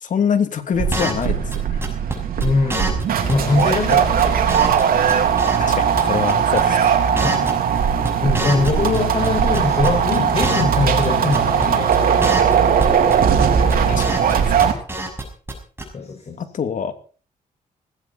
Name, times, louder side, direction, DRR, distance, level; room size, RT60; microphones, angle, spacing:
voice 1, 0.0-1.8 5.6-6.9 13.9-14.2 16.4-16.9, left 7 dB, 60° left, 7 dB, 3.0 m, -24 dB
sound 1, 0.7-14.7, right 7 dB, 80° right, 3.6 m, -19 dB
sound 2, 0.9-1.3 1.5-1.6 1.8-2.1 2.4-2.5 2.7-3.0 3.3-3.4 3.6-3.7 3.9-4.8 5.1-6.0 6.3-6.6 6.9-9.0 9.2-10.8 11.0-11.1 11.3-11.7 11.9-12.0 12.2-12.5 12.8-13.1 13.4-14.3 14.6-15.2 15.5-15.6 15.8-15.9, right 2 dB, 15° right, 6.5 m, -25 dB
voice 2, 2.4-3.0 3.3-4.9 7.2-12.4 13.6-14.0 15.9-16.4, left 4 dB, 45° left, 2 dB, 5.6 m, -23 dB
18.5 x 17.0 x 4.4 m, 0.40 s
cardioid pair, 115°, 15 cm